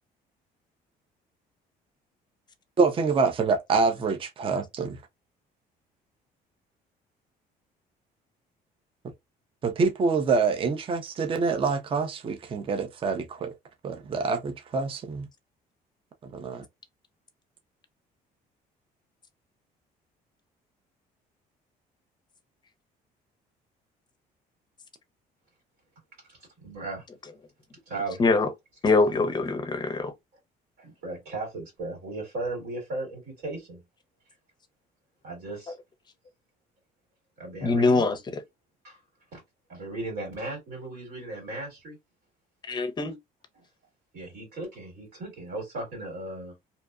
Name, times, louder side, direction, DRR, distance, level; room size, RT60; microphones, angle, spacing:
voice 1, 2.8-5.0 9.6-13.5 13.8-15.3 16.2-16.6, right 4 dB, 30° right, 0.5 m, -26 dB
voice 2, 26.3-27.1 27.9-28.2 30.8-33.8 35.2-35.8 37.4-38.0 38.8-39.0 39.3-39.4 39.7-42.0 44.1-46.5, right 2 dB, 80° right, 1.8 m, -36 dB
voice 3, 28.2-28.5 28.8-30.1 37.6-38.4 42.6-43.1, left 3 dB, 25° left, 0.5 m, -23 dB
2.7 x 2.1 x 2.3 m
cardioid pair, 110°, 17 cm